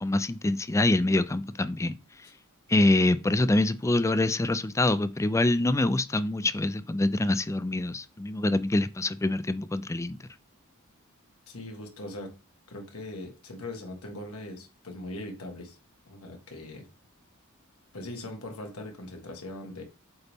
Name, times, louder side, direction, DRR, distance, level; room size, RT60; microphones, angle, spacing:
voice 1, 0.0-2.0 2.7-10.2, left 2 dB, 15° left, 0.4 m, -25 dB
voice 2, 11.5-12.3 12.7-15.8 16.1-16.9 17.9-19.8, left 1 dB, 80° left, 1.6 m, -40 dB
7.9 x 4.1 x 3.6 m
head